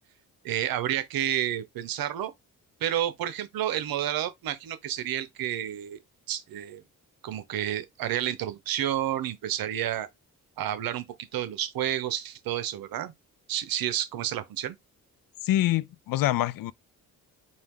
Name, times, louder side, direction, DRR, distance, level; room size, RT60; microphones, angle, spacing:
voice 1, 0.4-2.3 2.8-6.0 6.3-6.8 7.2-10.1 10.6-11.1 11.3-13.1 13.5-14.8, right 11 dB, 85° right, 0.8 m, -30 dB
voice 2, 15.4-16.7, left 14 dB, 75° left, 0.5 m, -25 dB
4.6 x 2.5 x 3.6 m
cardioid pair, 85°, 35 cm